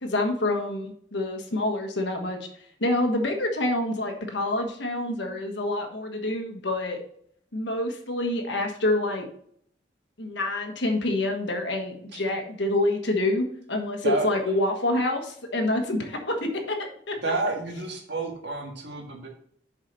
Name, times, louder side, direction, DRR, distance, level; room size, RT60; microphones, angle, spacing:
voice 1, 0.0-2.5 2.8-7.0 7.5-9.3 10.2-17.2, left 2 dB, 70° left, 4 dB, 1.4 m, -27 dB
voice 2, 17.2-19.3, right 3 dB, 65° right, 1 dB, 1.7 m, -29 dB
7.3 x 5.0 x 4.0 m, 0.65 s
head